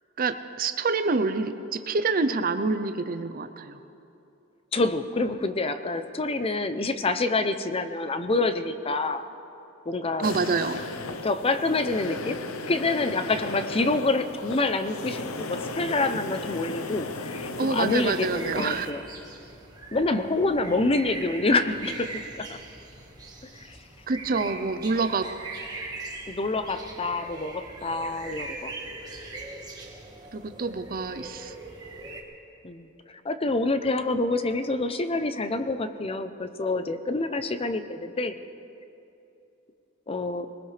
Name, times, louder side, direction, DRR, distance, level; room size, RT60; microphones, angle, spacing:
voice 1, 0.2-3.8 10.2-10.8 17.6-18.9 24.1-25.2 30.3-31.5, right 4 dB, 45° right, 9 dB, 0.6 m, -27 dB
voice 2, 4.7-9.3 9.9-10.3 11.2-12.4 12.7-19.0 19.9-22.6 23.5-23.8 24.4-24.5 26.3-28.7 32.6-38.3 40.1-40.5, left 2 dB, 25° left, 10 dB, 0.6 m, -27 dB
sound 1, 10.2-18.9, left 3 dB, 85° left, 0.8 m, -36 dB
sound 2, 17.9-32.2, right 3 dB, 20° right, 1.5 m, -41 dB
20.5 x 20.5 x 3.3 m, 2.8 s
head